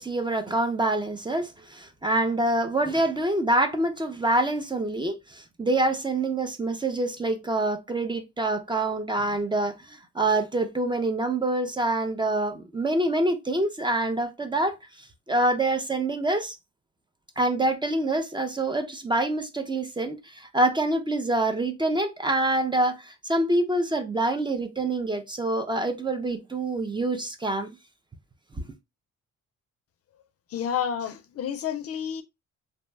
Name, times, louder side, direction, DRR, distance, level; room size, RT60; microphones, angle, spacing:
voice 1, 0.0-14.8 15.3-16.5 17.4-27.7, right 2 dB, 15° right, 0.5 m, -26 dB
voice 2, 30.5-32.2, left 8 dB, 50° left, 0.5 m, -30 dB
2.7 x 2.1 x 3.1 m
cardioid pair, 90°, 30 cm